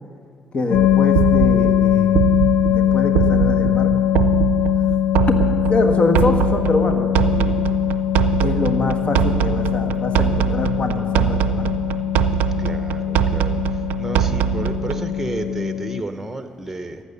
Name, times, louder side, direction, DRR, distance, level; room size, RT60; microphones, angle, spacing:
voice 1, 0.5-2.4 2.7-3.9 5.3-5.4 5.7-7.6 8.4-12.0, left 2 dB, 50° left, 6 dB, 1.5 m, -24 dB
sound 1, 0.7-16.0, left 11 dB, 70° left, 0.4 m, -21 dB
sound 2, 0.7-15.1, right 12 dB, 75° right, 0.4 m, -23 dB
voice 2, 12.6-13.6 14.0-17.0, right 2 dB, 10° right, 8 dB, 1.1 m, -31 dB
15.0 x 9.9 x 6.8 m, 2.1 s
hypercardioid pair, 45°, 3 cm